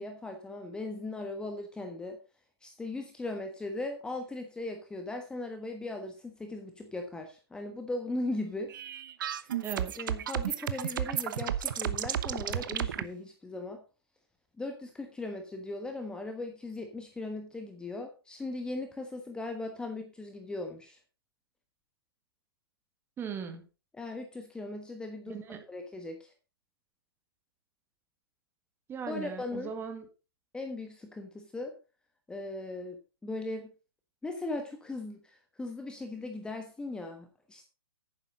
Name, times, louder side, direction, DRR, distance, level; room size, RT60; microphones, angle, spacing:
voice 1, 0.0-2.2 2.6-8.7 9.4-9.6 10.0-13.8 14.6-21.0 23.9-25.4 25.7-26.3 29.1-29.7 30.5-31.7 32.3-33.7 34.2-37.6, left 2 dB, 5° left, 5 dB, 1.3 m, -38 dB
sound 1, 8.7-13.0, right 10 dB, 55° right, 1.0 m, -33 dB
voice 2, 9.6-9.9 23.2-23.6 25.3-25.6 28.9-30.1, right 7 dB, 15° right, 7 dB, 1.8 m, -38 dB
11.0 x 9.7 x 4.0 m, 0.32 s
figure-of-eight pair, 125°, 13 cm